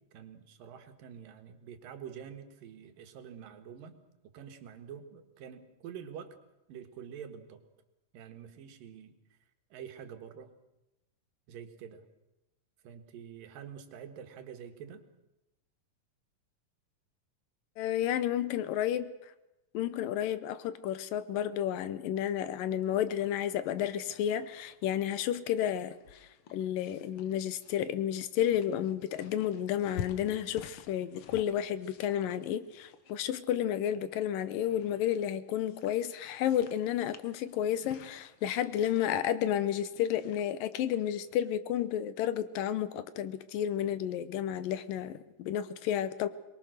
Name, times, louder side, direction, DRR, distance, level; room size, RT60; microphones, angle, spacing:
voice 1, 0.1-4.0 4.3-6.4 6.7-7.6 8.1-9.1 9.7-10.5 11.5-12.0 12.8-15.0, right 8 dB, 85° right, 7 dB, 3.2 m, -47 dB
voice 2, 17.8-19.1 19.7-26.0 26.5-46.3, left 10 dB, 85° left, 13 dB, 2.7 m, -31 dB
sound 1, 22.5-41.5, left 9 dB, 65° left, 1.5 m, -51 dB
23.0 x 21.0 x 6.5 m, 0.96 s
omnidirectional pair, 3.9 m